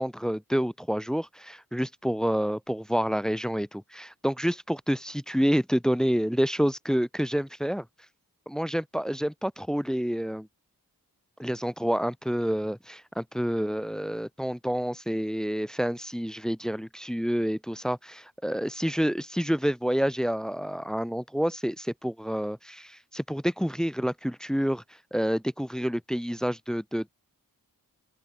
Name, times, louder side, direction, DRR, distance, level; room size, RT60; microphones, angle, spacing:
voice 1, 0.0-7.8 8.5-10.5 11.4-24.8 25.1-27.1, equal, ahead, 0.5 m, -28 dB
open air
wide cardioid pair, 85°, 36 cm